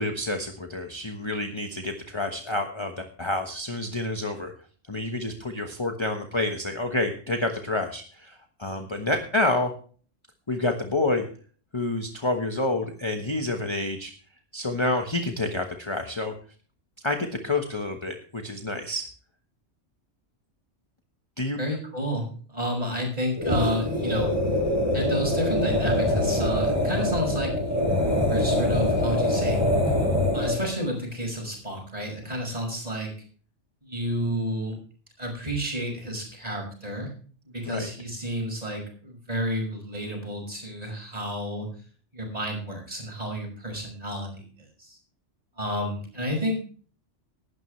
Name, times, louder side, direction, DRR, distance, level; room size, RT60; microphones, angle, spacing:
voice 1, 0.0-4.5 4.9-9.7 10.5-11.2 11.7-14.1 14.5-16.3 17.0-19.1 21.4-21.6 37.7-37.9, left 2 dB, 25° left, 4 dB, 1.2 m, -28 dB
voice 2, 21.6-24.3 24.9-29.6 30.3-33.1 33.8-34.8 35.2-37.1 37.5-41.7 42.1-44.5 44.8-45.0 45.6-46.5, equal, 30° right, 2 dB, 5.9 m, -31 dB
sound 1, 23.3-30.7, left 1 dB, 10° right, 5.8 m, -24 dB
16.5 x 12.0 x 3.2 m, 0.42 s
omnidirectional pair, 1.2 m